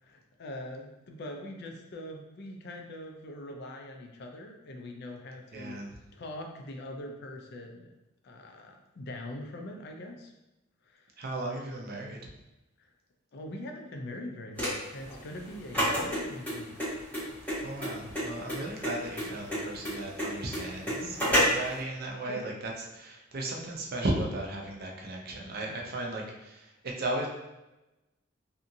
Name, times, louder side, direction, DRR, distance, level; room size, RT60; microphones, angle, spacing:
voice 1, 0.0-5.8 6.1-7.9 8.2-10.3 10.9-11.1 12.8-12.9 13.3-16.8 19.2-19.3 21.0-21.3 22.3-22.4 25.6-25.8, left 1 dB, 60° left, 2 dB, 0.4 m, -43 dB
voice 2, 5.5-5.9 11.2-12.2 17.5-27.3, right 1 dB, 50° right, 0 dB, 0.5 m, -36 dB
sound 1, 14.6-21.7, equal, 10° left, 1.2 m, -30 dB
2.7 x 2.5 x 2.6 m, 0.98 s
head